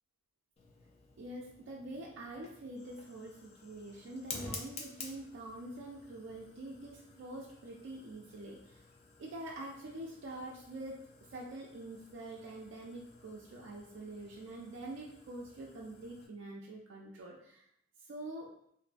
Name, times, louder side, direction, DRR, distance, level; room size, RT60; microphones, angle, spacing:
Fire, 0.6-16.3, left 4 dB, 30° left, 0.3 m, -52 dB
voice 1, 1.2-8.8 9.2-11.0 11.3-17.6 18.1-18.5, right 1 dB, 65° right, -3 dB, 0.4 m, -45 dB
2.5 x 2.2 x 2.4 m, 0.69 s
head